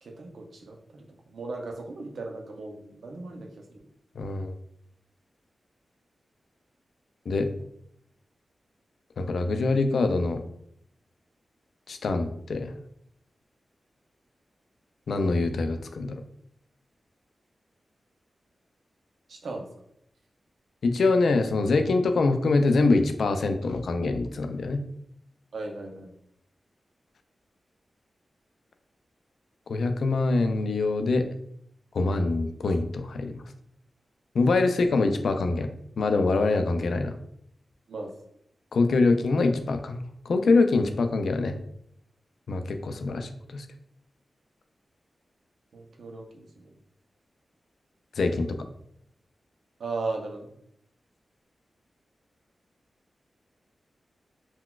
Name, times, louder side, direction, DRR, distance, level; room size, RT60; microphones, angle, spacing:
voice 1, 0.0-3.9 19.3-19.7 25.5-26.1 37.9-38.1 45.7-46.8 49.8-50.5, right 3 dB, 80° right, 2 dB, 0.5 m, -37 dB
voice 2, 4.2-4.5 7.3-7.5 9.2-10.4 11.9-12.7 15.1-16.2 20.8-24.8 29.7-31.3 31.9-33.4 34.3-35.7 36.0-37.1 38.7-41.6 42.5-43.6 48.2-48.6, left 3 dB, 80° left, 7 dB, 0.3 m, -24 dB
3.9 x 2.2 x 2.3 m, 0.72 s
wide cardioid pair, 85°, 0 cm